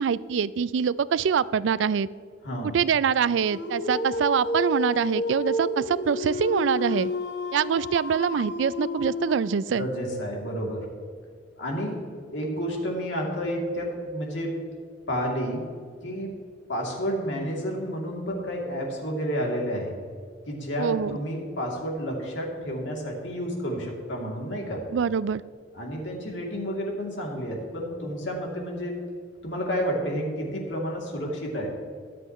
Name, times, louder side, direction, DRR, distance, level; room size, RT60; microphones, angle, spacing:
voice 1, 0.0-2.1 2.7-7.1 7.5-9.9 20.8-21.2 24.9-25.4, right 7 dB, 80° right, 18 dB, 0.4 m, -24 dB
Dog, 3.4-9.7, left 1 dB, 65° left, 1.1 m, -31 dB
voice 2, 9.8-10.9 11.6-12.0 12.3-14.6 15.1-15.6 16.0-16.3 16.7-20.0 20.5-24.8 25.7-29.0 29.4-31.7, equal, 85° left, -1 dB, 2.8 m, -30 dB
22.5 x 7.8 x 3.1 m, 2.2 s
head